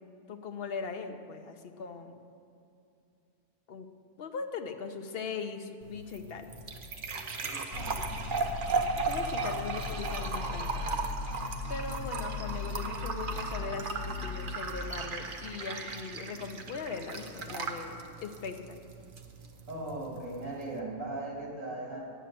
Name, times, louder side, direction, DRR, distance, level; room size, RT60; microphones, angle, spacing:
voice 1, 0.3-2.2 3.7-3.9 4.2-6.5 9.1-10.8 11.7-18.8, left 5 dB, 55° left, 6 dB, 0.9 m, -40 dB
sound 1, 5.8-20.8, right 4 dB, 45° right, 0.9 m, -37 dB
voice 2, 7.4-8.3 19.7-22.1, right 2 dB, 80° right, -2 dB, 2.7 m, -39 dB
sound 2, 7.7-14.6, left 4 dB, 80° left, 1.0 m, -38 dB
10.0 x 9.1 x 6.7 m, 2.6 s
omnidirectional pair, 1.4 m